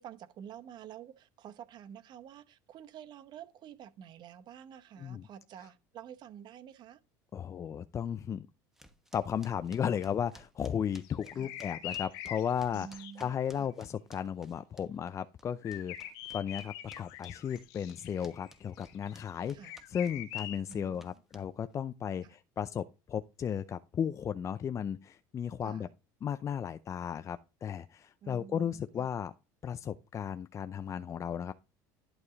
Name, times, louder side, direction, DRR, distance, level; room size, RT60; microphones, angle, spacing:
voice 1, 0.0-7.0 11.4-11.5 12.7-13.7 19.5-19.8 20.7-21.2 22.2-22.4 25.6-25.9 28.2-29.1, right 9 dB, 50° right, 0.9 m, -49 dB
voice 2, 7.3-8.5 9.1-25.9 26.2-29.3 29.6-31.5, left 8 dB, 35° left, 0.5 m, -35 dB
sound 1, 8.8-15.1 15.4-21.7, right 1 dB, 5° right, 1.2 m, -58 dB
sound 2, 11.0-13.2 15.6-20.6, left 12 dB, 75° left, 1.3 m, -43 dB
11.5 x 4.8 x 3.9 m
supercardioid pair, 100°, 9 cm